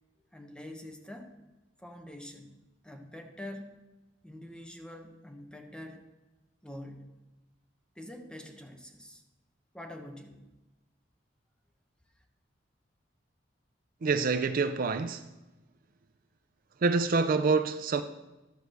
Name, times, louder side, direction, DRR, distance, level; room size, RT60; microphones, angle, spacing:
voice 1, 0.3-1.3 1.8-3.7 4.2-6.0 6.6-7.1 7.9-9.2 9.7-10.5, left 1 dB, 5° left, 1.0 m, -45 dB
voice 2, 14.0-15.2 16.8-18.0, right 4 dB, 50° right, 0.4 m, -26 dB
12.0 x 4.7 x 6.6 m
head